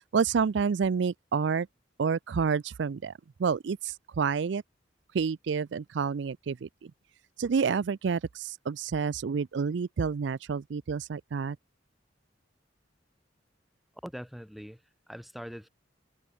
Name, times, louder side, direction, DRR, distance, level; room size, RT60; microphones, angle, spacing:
voice 1, 0.1-1.7 2.0-3.1 3.4-4.6 5.1-6.9 7.4-11.6, right 6 dB, 70° right, 0.4 m, -29 dB
voice 2, 14.0-15.7, equal, ahead, 4.1 m, -43 dB
head